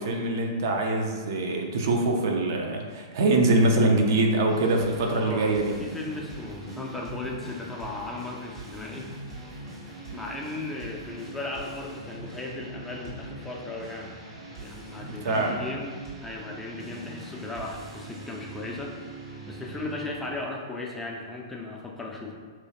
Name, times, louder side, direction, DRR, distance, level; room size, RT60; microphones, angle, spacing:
voice 1, 0.0-5.7 15.0-15.5, right 2 dB, 55° right, 2 dB, 0.4 m, -24 dB
sound 1, 4.5-20.5, right 2 dB, 80° right, 1.5 m, -42 dB
voice 2, 5.1-5.5 5.8-9.1 10.1-14.2 14.6-19.2 19.5-22.3, left 2 dB, 10° left, -1 dB, 0.4 m, -36 dB
3.0 x 3.0 x 2.7 m, 1.5 s
figure-of-eight pair, 105°, 2 cm